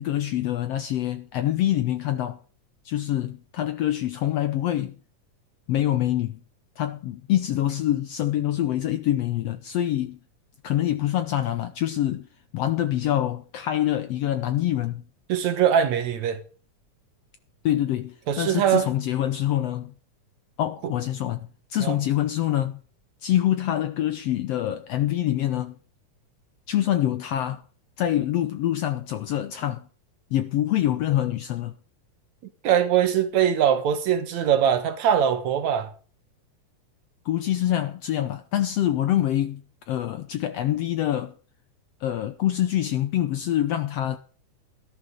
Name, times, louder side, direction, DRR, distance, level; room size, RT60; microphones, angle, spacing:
voice 1, 0.0-2.4 2.8-4.9 5.7-6.4 6.8-10.2 10.6-12.3 12.5-15.0 17.6-19.9 20.6-22.8 23.2-25.7 26.7-27.6 28.0-29.8 30.3-31.8 37.2-39.6 39.9-41.3 42.0-44.2, left 12 dB, 75° left, 1.5 m, -25 dB
voice 2, 15.3-16.4 18.3-18.9 20.8-20.9 21.8-22.0 32.6-35.9, right 9 dB, 65° right, 2.5 m, -22 dB
14.0 x 12.5 x 3.8 m
omnidirectional pair, 3.6 m